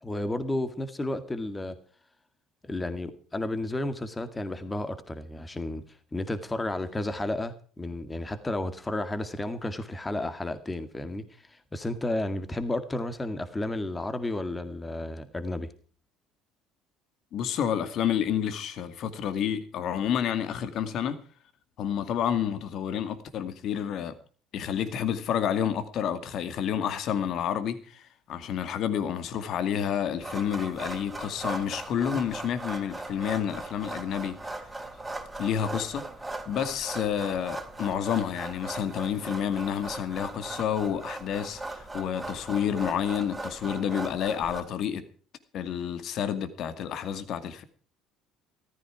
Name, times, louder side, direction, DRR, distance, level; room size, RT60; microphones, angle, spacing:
voice 1, 0.0-1.8 2.6-5.8 6.1-11.2 11.7-15.7, left 2 dB, 15° left, 2.1 m, -32 dB
voice 2, 17.3-21.2 21.8-24.2 24.5-34.4 35.4-36.1 36.5-45.0 45.5-47.6, left 9 dB, 60° left, 2.3 m, -29 dB
sound 1, 30.2-44.6, right 2 dB, 10° right, 3.4 m, -39 dB
14.5 x 14.0 x 4.8 m
hypercardioid pair, 70°, 0 cm